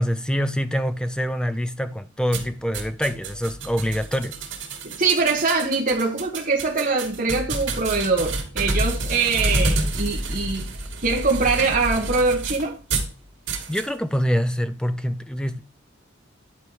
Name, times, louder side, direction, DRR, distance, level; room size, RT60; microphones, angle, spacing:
voice 1, 0.0-4.4 13.7-15.6, equal, 5° left, 0.5 m, -25 dB
sound 1, 2.3-13.1 13.5-13.9, right 2 dB, 70° right, 2.7 m, -28 dB
voice 2, 4.8-10.7 11.0-12.8, right 4 dB, 40° right, 1.5 m, -23 dB
11.0 x 4.6 x 4.7 m
head